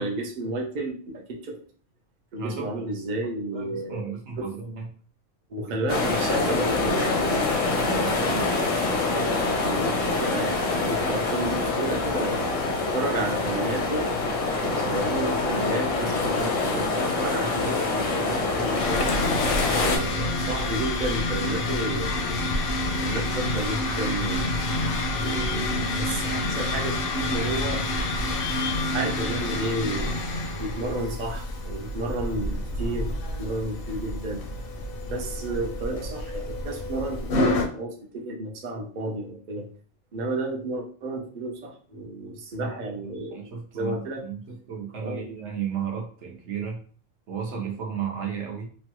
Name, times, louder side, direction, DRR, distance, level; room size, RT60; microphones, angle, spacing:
voice 1, 0.0-1.6 2.3-4.5 5.5-12.5 12.9-14.1 14.6-19.0 19.7-22.5 23.0-24.5 25.2-27.8 28.9-30.1 30.6-34.5 35.1-39.7 40.1-44.2 45.0-45.2, right 2 dB, 50° right, 1 dB, 0.6 m, -32 dB
voice 2, 2.4-2.7 3.4-4.9 5.7-5.8 6.1-6.4 42.6-46.8 47.3-48.7, right 7 dB, 70° right, 0 dB, 1.1 m, -34 dB
sound 1, 5.9-20.0, left 3 dB, 85° left, 1.0 m, -25 dB
sound 2, 18.8-37.7, left 2 dB, 60° left, 0.7 m, -28 dB
3.1 x 2.2 x 2.9 m, 0.43 s
omnidirectional pair, 1.3 m